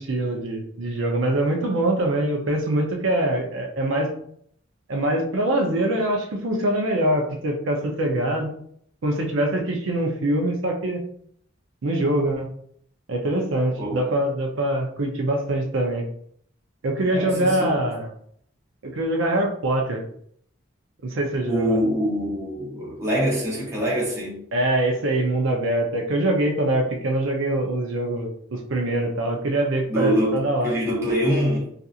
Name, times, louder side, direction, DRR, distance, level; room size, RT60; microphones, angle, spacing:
voice 1, 0.0-4.1 4.9-8.5 9.0-11.0 11.8-12.5 13.1-16.0 16.8-18.1 18.8-20.0 21.0-21.8 24.5-30.7, right 1 dB, 80° right, 0.5 m, -24 dB
voice 2, 17.1-17.8 21.4-24.4 29.9-31.7, equal, 15° right, 0.8 m, -24 dB
2.7 x 2.5 x 2.4 m
head